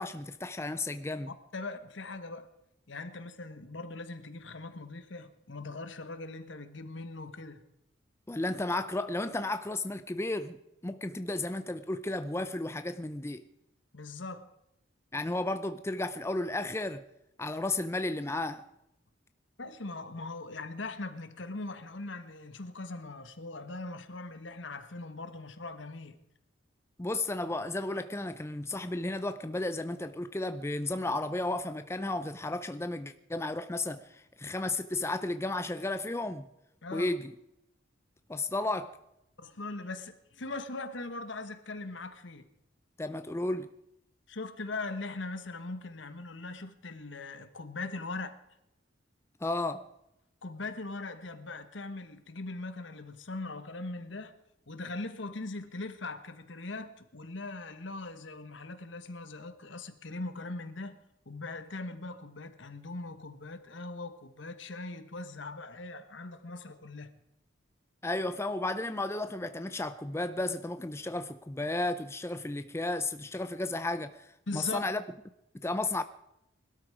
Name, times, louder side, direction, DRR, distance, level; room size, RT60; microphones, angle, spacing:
voice 1, 0.0-1.3 8.3-10.6 10.8-13.4 15.1-17.0 17.4-18.7 27.0-36.5 36.9-37.3 38.3-39.0 43.0-43.7 49.4-49.9 68.0-75.0 75.5-76.0, left 2 dB, 15° left, 0.5 m, -33 dB
voice 2, 1.5-2.5 2.9-7.6 13.9-14.5 19.6-26.2 36.8-37.1 39.4-42.5 44.3-48.4 50.4-54.3 54.7-61.0 61.2-67.1 74.5-74.8, left 3 dB, 70° left, 1.3 m, -40 dB
21.0 x 12.5 x 4.9 m
head